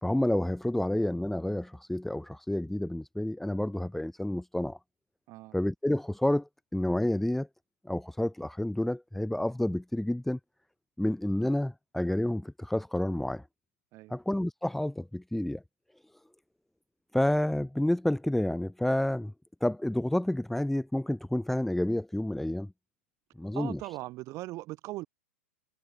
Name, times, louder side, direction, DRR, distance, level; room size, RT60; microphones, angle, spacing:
voice 1, 0.0-4.8 5.5-7.5 7.8-10.4 11.0-13.4 14.1-15.6 17.1-19.3 19.6-22.7 23.4-23.8, left 1 dB, ahead, 2.3 m, -29 dB
voice 2, 23.5-25.1, right 18 dB, 40° right, 5.2 m, -39 dB
hypercardioid pair, 120°, 8 cm